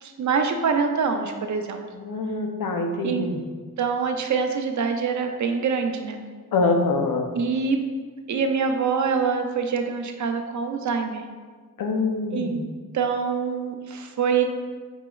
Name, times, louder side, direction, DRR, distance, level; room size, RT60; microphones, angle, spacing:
voice 1, 0.0-1.8 3.0-3.3 3.8-6.2 7.4-7.8 8.3-11.2 12.3-12.6 12.9-14.4, right 5 dB, 60° right, 5 dB, 0.5 m, -25 dB
voice 2, 1.9-3.4 6.5-7.3 11.8-12.7, left 3 dB, 75° left, 3 dB, 0.6 m, -25 dB
5.3 x 3.0 x 2.3 m, 1.5 s
wide cardioid pair, 90°, 34 cm